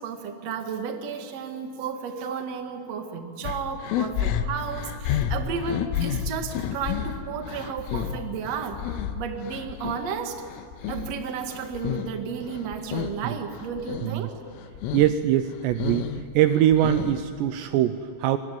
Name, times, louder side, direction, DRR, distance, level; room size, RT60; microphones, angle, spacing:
voice 1, 0.0-8.8 9.1-10.4 10.9-14.4, right 6 dB, 55° right, 5 dB, 1.9 m, -33 dB
sound 1, 3.5-10.0 10.4-12.2 12.5-13.2 13.5-14.1 14.5-15.1 15.5-17.4, left 9 dB, 85° left, 3.5 m, -31 dB
voice 2, 14.9-16.1 16.3-18.4, right 12 dB, 90° right, 10 dB, 2.4 m, -22 dB
25.5 x 23.0 x 9.4 m, 2.7 s
omnidirectional pair, 5.9 m